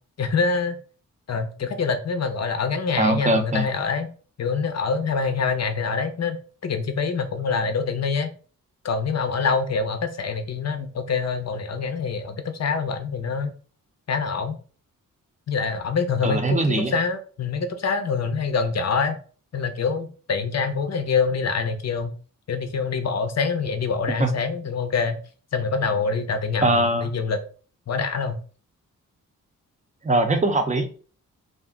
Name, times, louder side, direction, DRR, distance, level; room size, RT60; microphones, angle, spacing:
voice 1, 0.2-0.8 1.3-4.1 4.4-6.4 6.6-8.3 8.8-13.5 14.1-14.6 15.5-19.2 19.5-22.1 22.5-25.2 25.5-27.4 27.9-28.4, left 5 dB, 50° left, 8 dB, 0.6 m, -25 dB
voice 2, 3.0-3.7 16.2-17.0 24.2-24.3 26.6-27.1 30.0-30.8, right 2 dB, 20° right, 6 dB, 0.6 m, -21 dB
2.4 x 2.1 x 3.6 m, 0.40 s
cardioid pair, 60°, 34 cm